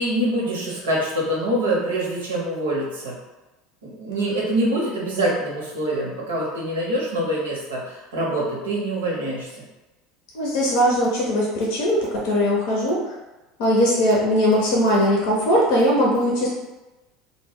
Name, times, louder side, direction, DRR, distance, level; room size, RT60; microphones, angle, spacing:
voice 1, 0.0-3.2 3.8-9.6, right 1 dB, 85° right, -3 dB, 0.8 m, -25 dB
voice 2, 10.3-13.1 13.6-16.5, equal, 65° left, -3 dB, 0.6 m, -20 dB
2.2 x 2.1 x 3.4 m, 1.1 s
hypercardioid pair, 80°, 0 cm